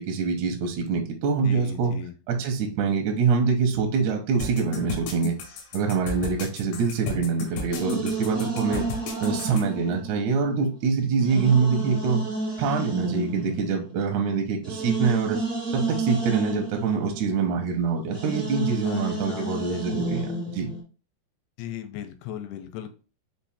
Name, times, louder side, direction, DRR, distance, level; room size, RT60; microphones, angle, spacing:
voice 1, 0.0-1.9 2.3-5.4 5.7-8.9 9.2-12.2 12.6-15.4 15.7-20.7, right 5 dB, 75° right, 3 dB, 1.7 m, -25 dB
voice 2, 1.4-2.1 18.8-19.9 21.6-22.9, left 11 dB, 90° left, 8 dB, 2.6 m, -37 dB
sound 1, 4.4-9.6, left 3 dB, 70° left, 2.0 m, -34 dB
sound 2, 7.7-10.7 11.2-17.8 18.1-20.8, right 2 dB, ahead, 0.5 m, -31 dB
5.9 x 2.6 x 3.4 m, 0.35 s
omnidirectional pair, 4.6 m